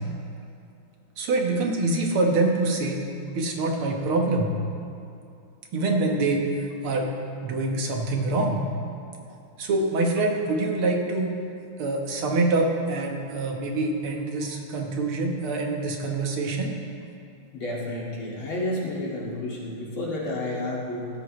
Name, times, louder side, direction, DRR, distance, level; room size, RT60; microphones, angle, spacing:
voice 1, 1.2-3.0 3.3-4.5 5.7-7.1 7.4-8.6 9.6-11.3 11.8-16.7, right 2 dB, 90° right, 1 dB, 2.3 m, -25 dB
voice 2, 17.5-21.1, left 1 dB, 75° left, -4 dB, 3.1 m, -30 dB
16.5 x 13.5 x 3.2 m, 2.5 s
omnidirectional pair, 2.3 m